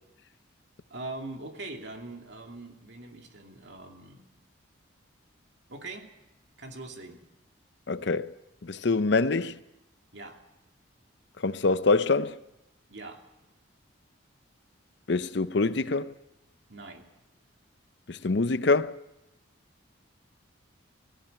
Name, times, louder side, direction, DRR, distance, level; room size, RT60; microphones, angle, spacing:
voice 1, 0.9-4.2 5.7-6.1 6.6-7.2 10.1-10.4 12.9-13.2 16.7-17.1, right 2 dB, 60° right, 2.6 m, -42 dB
voice 2, 7.9-8.3 8.6-9.6 11.4-12.4 15.1-16.1 18.1-19.0, left 3 dB, 60° left, 0.6 m, -25 dB
18.0 x 16.5 x 8.9 m
head